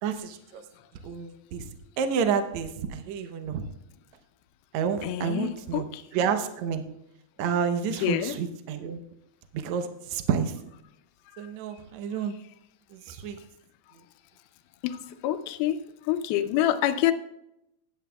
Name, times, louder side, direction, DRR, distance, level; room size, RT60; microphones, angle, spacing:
voice 1, 0.0-0.6 1.0-1.6 2.0-3.6 4.7-5.9 6.1-6.8 7.4-9.0 9.6-10.5 11.4-12.3 13.1-13.4, right 7 dB, 80° right, 7 dB, 1.6 m, -29 dB
voice 2, 5.0-6.0 7.9-8.4 14.8-15.8 16.0-17.1, left 12 dB, 80° left, 10 dB, 2.5 m, -27 dB
15.5 x 9.8 x 2.3 m, 0.82 s
omnidirectional pair, 4.4 m